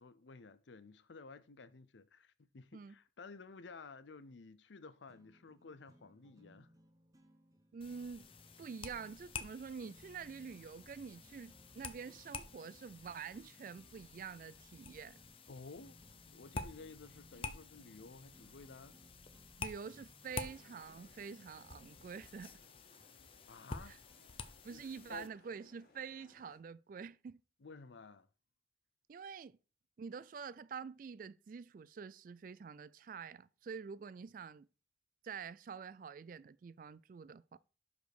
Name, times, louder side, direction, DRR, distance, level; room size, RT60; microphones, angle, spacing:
voice 1, 0.0-6.7 15.5-16.0 16.3-19.0 23.5-24.0 24.7-25.3 27.6-28.3, left 4 dB, 80° left, 0.6 m, -54 dB
sound 1, 5.0-22.0, equal, 20° right, 1.0 m, -65 dB
voice 2, 7.7-8.3 8.6-15.2 19.6-22.6 23.9-24.0 24.6-27.4 29.1-29.6 30.0-34.7 35.2-37.6, right 6 dB, 50° right, 0.3 m, -47 dB
sound 2, 7.8-25.3, left 4 dB, 30° left, 0.6 m, -50 dB
sound 3, 20.3-26.6, left 2 dB, 55° left, 1.6 m, -67 dB
6.1 x 5.2 x 5.0 m
head